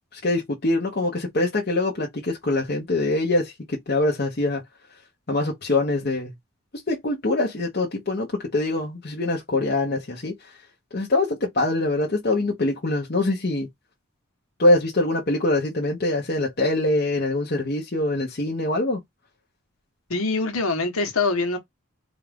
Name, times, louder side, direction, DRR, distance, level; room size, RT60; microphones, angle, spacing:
voice 1, 0.1-4.6 5.3-6.3 6.9-10.3 10.9-13.7 14.6-19.0, left 2 dB, 45° left, 0.9 m, -24 dB
voice 2, 20.1-21.6, left 3 dB, 80° left, 1.2 m, -24 dB
4.1 x 2.5 x 3.4 m
head